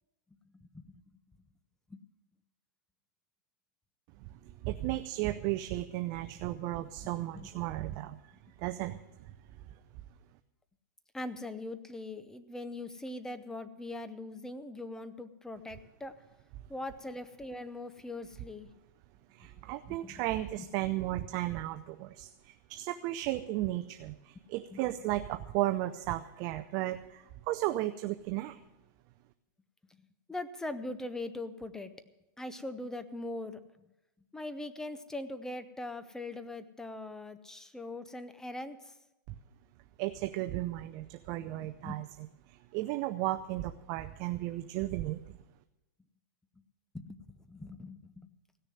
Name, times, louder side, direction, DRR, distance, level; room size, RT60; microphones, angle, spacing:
voice 1, 0.4-1.2 1.9-2.0 7.3-7.5 7.9-8.0 11.1-16.1 16.7-18.7 19.9-20.1 20.6-20.7 24.7-24.8 30.0-31.9 32.4-33.9 34.3-39.0 41.4-42.0 46.9-48.3, left 2 dB, 5° left, 11 dB, 0.6 m, -41 dB
voice 2, 4.4-8.2 8.6-9.0 19.3-28.6 40.0-42.1 42.5-45.4, right 16 dB, 40° right, 8 dB, 0.5 m, -34 dB
16.0 x 6.7 x 9.1 m, 0.98 s
hypercardioid pair, 140°, 11 cm